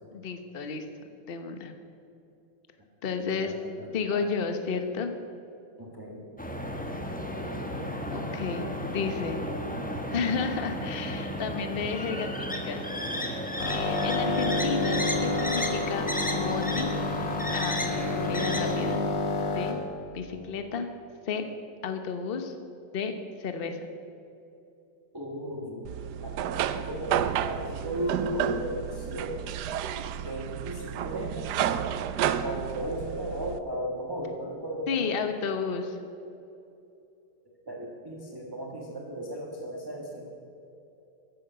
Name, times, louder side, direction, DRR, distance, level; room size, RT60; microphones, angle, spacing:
voice 1, 0.1-0.8 1.3-1.7 3.0-3.5 3.9-5.1 8.1-9.4 10.1-12.8 13.3-16.9 17.5-17.8 18.1-19.0 19.5-19.8 20.1-20.9 21.3-21.4 21.8-22.5 22.9-23.9 34.9-36.0, left 5 dB, 50° left, 7 dB, 0.7 m, -32 dB
voice 2, 3.2-4.3 5.8-6.3 25.1-29.3 30.2-31.5 32.4-35.3 37.6-40.3, equal, 15° right, -1 dB, 1.2 m, -36 dB
sound 1, 6.4-19.0, equal, 10° left, 0.5 m, -33 dB
sound 2, 13.6-19.7, left 3 dB, 80° left, 2.7 m, -29 dB
sound 3, 25.8-33.6, right 9 dB, 80° right, 0.9 m, -31 dB
14.0 x 11.0 x 6.8 m, 2.8 s
omnidirectional pair, 2.4 m